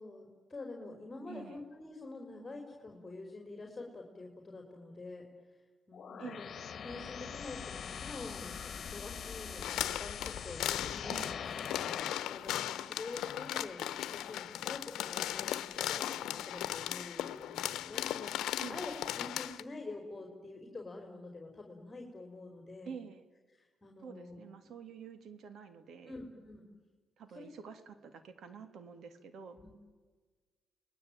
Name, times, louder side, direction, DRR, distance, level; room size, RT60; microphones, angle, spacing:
voice 1, 0.0-5.3 5.9-11.4 11.8-22.9 23.6-24.4 26.1-26.7 27.3-27.5 29.6-29.7, left 2 dB, 20° left, 2 dB, 5.0 m, -47 dB
voice 2, 1.3-1.6 6.2-6.4 11.1-11.4 18.6-18.8 22.8-23.2 24.0-26.2 27.2-29.6, right 6 dB, 65° right, 10 dB, 3.0 m, -48 dB
sound 1, 5.9-12.4, left 7 dB, 50° left, 1.7 m, -43 dB
sound 2, 9.6-19.6, left 12 dB, 85° left, 1.0 m, -37 dB
29.5 x 20.5 x 9.1 m, 1.4 s
cardioid pair, 90°, 0 cm